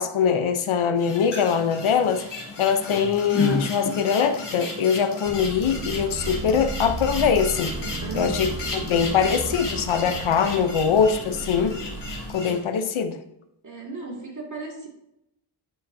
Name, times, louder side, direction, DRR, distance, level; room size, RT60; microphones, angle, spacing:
voice 1, 0.0-7.8 8.1-11.8 12.3-13.2, left 7 dB, 75° left, 8 dB, 0.9 m, -23 dB
sound 1, 1.0-12.6, left 3 dB, 55° left, 3.1 m, -33 dB
sound 2, 5.2-12.3, right 2 dB, 65° right, 1.7 m, -34 dB
voice 2, 8.0-8.6 13.6-14.9, right 3 dB, 35° right, -1 dB, 2.3 m, -35 dB
12.0 x 8.0 x 2.8 m, 0.82 s
wide cardioid pair, 155°, 49 cm